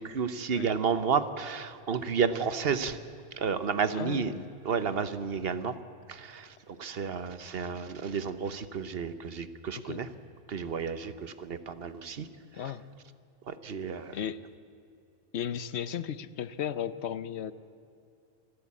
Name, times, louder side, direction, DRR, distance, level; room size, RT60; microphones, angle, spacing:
voice 1, 0.0-3.0 3.4-4.3 4.6-5.8 6.1-10.1 10.5-12.3 13.5-14.2, right 6 dB, 60° right, 13 dB, 1.1 m, -31 dB
voice 2, 4.0-4.5 9.8-10.0 12.5-12.8 14.1-14.4 15.3-17.5, left 9 dB, 75° left, 15 dB, 1.0 m, -35 dB
28.5 x 11.5 x 8.4 m, 2.5 s
omnidirectional pair, 1.2 m